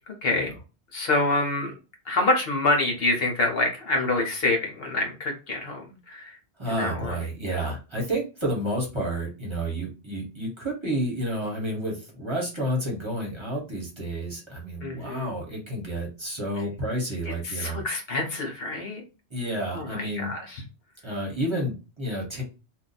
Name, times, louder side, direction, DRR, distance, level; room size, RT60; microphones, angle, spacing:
voice 1, 0.1-0.5 0.9-1.8 2.1-6.4 6.7-7.2 14.8-15.4 17.4-19.0 19.7-20.6, left 2 dB, 60° left, 2 dB, 1.0 m, -26 dB
voice 2, 6.6-17.8 19.3-20.3 21.0-22.4, right 1 dB, 25° right, -2 dB, 1.1 m, -30 dB
2.7 x 2.3 x 4.0 m, 0.31 s
omnidirectional pair, 1.1 m